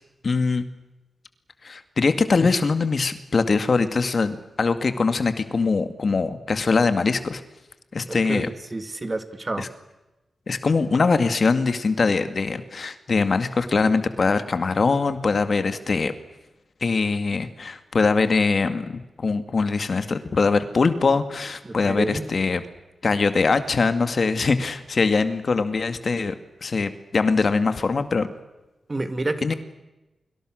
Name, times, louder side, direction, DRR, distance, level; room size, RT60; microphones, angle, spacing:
voice 1, 0.2-0.6 1.6-7.4 7.9-8.5 9.6-9.7 10.5-16.1 16.8-22.6 23.0-26.4 26.6-28.3 29.4-29.5, left 4 dB, 55° left, 10 dB, 2.1 m, -22 dB
voice 2, 8.1-9.7 21.6-22.2 28.9-29.5, right 2 dB, 30° right, 9 dB, 2.8 m, -29 dB
30.0 x 25.0 x 6.5 m, 1.0 s
cardioid pair, 75°, 0 cm